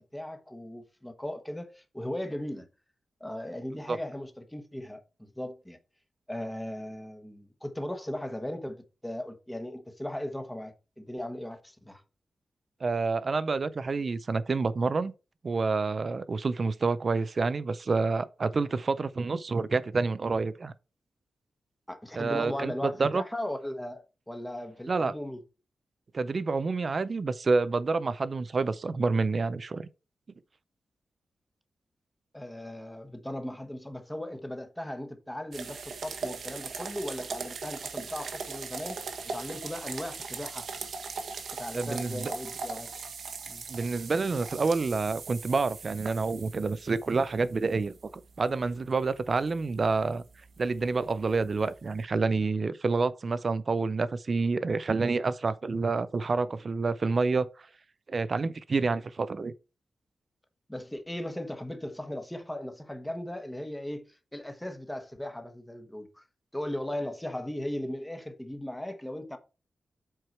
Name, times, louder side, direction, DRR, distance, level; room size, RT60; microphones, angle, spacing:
voice 1, 0.0-2.7 3.2-5.8 6.3-12.0 21.9-25.4 32.3-40.7 41.5-42.9 43.5-43.6 60.7-66.2 66.5-69.4, left 1 dB, 5° left, 1.1 m, -37 dB
voice 2, 12.8-15.1 15.4-20.7 22.2-23.2 24.9-25.1 26.1-29.9 41.7-42.3 43.7-47.9 48.4-50.2 50.6-57.5 58.1-59.5, right 4 dB, 40° right, 0.5 m, -28 dB
sound 1, 35.5-52.0, right 4 dB, 75° right, 1.2 m, -40 dB
7.9 x 4.6 x 4.5 m
wide cardioid pair, 130°, 0 cm